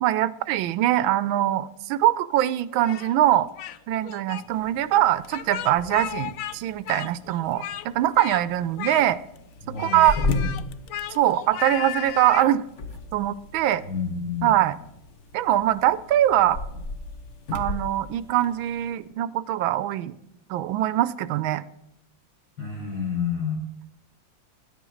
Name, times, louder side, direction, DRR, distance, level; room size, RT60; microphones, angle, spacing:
voice 1, 0.0-3.5 3.9-9.2 9.8-10.2 11.1-12.6 13.1-13.8 14.4-14.8 15.3-16.6 17.5-20.1 20.5-21.6, right 13 dB, 85° right, 16 dB, 1.4 m, -22 dB
Speech, 2.8-3.8 4.0-4.4 5.2-6.6 6.8-7.9 8.2-8.4 8.8-9.4 9.8-12.5, left 11 dB, 85° left, 0.7 m, -35 dB
sound 1, 4.3-19.1, left 3 dB, 45° left, 1.2 m, -37 dB
voice 2, 9.7-10.4 13.9-14.5 22.6-23.6, left 6 dB, 65° left, -2 dB, 8.1 m, -29 dB
13.0 x 10.0 x 6.3 m, 0.81 s
omnidirectional pair, 2.1 m